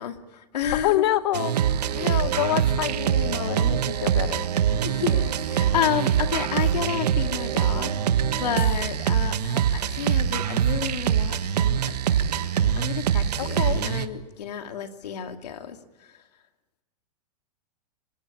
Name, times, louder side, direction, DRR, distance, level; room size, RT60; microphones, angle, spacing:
voice 1, 0.0-1.0 2.0-2.2 4.8-11.8 12.1-16.2, left 9 dB, 80° left, 5 dB, 2.6 m, -31 dB
voice 2, 0.8-1.5 1.9-4.5 13.4-13.8, left 14 dB, 40° left, 13 dB, 1.2 m, -27 dB
sound 1, 1.3-14.1, right 9 dB, 85° right, 1.5 m, -24 dB
25.0 x 18.5 x 8.6 m, 1.2 s
supercardioid pair, 180°, 20 cm